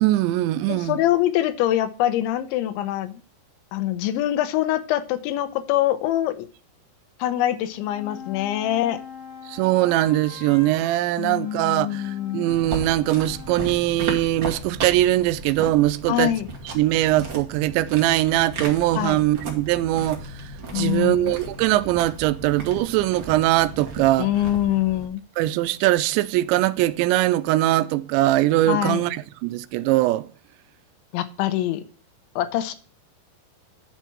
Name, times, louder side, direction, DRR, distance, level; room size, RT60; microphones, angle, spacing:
voice 1, 0.0-1.0 9.5-16.3 16.8-20.4 20.7-24.3 25.4-30.3, right 15 dB, 85° right, 2.8 m, -21 dB
voice 2, 0.7-3.2 3.7-6.5 7.2-9.0 11.2-12.5 16.1-16.5 19.0-19.2 20.7-21.3 24.2-25.2 28.7-29.0 31.1-31.8 32.4-32.8, left 13 dB, 90° left, 3.2 m, -24 dB
sound 1, 7.6-13.8, left 8 dB, 50° left, 2.0 m, -42 dB
sound 2, 12.5-25.1, right 3 dB, 50° right, 1.3 m, -36 dB
10.5 x 4.6 x 5.9 m
omnidirectional pair, 5.2 m